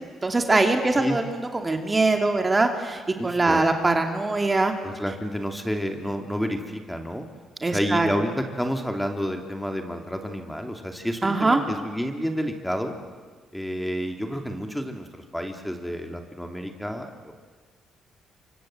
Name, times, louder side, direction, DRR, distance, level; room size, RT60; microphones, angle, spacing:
voice 1, 0.2-1.4 1.6-4.7 7.6-8.1 11.2-11.6, right 2 dB, 25° right, 5 dB, 2.6 m, -22 dB
voice 2, 3.2-3.7 4.8-7.3 7.6-12.9 13.5-17.3, equal, 5° left, 5 dB, 2.8 m, -30 dB
28.5 x 25.5 x 7.9 m, 1.5 s
cardioid pair, 90°, 0 cm